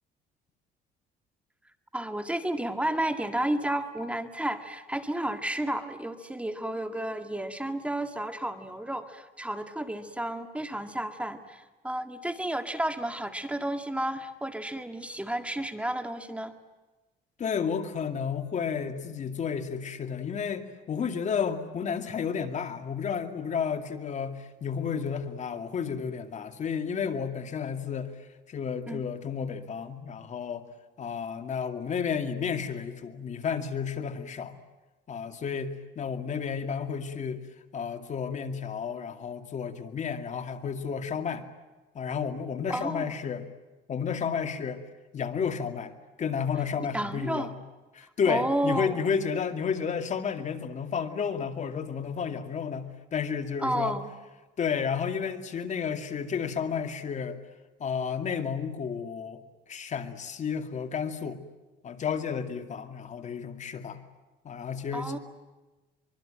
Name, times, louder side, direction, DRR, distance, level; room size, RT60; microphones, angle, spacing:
voice 1, 1.9-16.5 28.9-29.0 42.7-43.1 46.9-47.5 48.3-48.9 53.6-54.1 64.9-65.2, right 1 dB, 5° right, 7 dB, 1.9 m, -32 dB
voice 2, 17.4-30.7 31.0-34.6 35.1-37.4 37.7-41.4 41.9-43.5 43.9-44.8 45.1-45.9 46.2-47.6 47.9-54.0 54.6-57.4 57.8-61.4 61.8-64.0 64.4-65.2, left 6 dB, 45° left, 7 dB, 2.4 m, -32 dB
24.5 x 23.5 x 9.0 m, 1.2 s
cardioid pair, 110°, 17 cm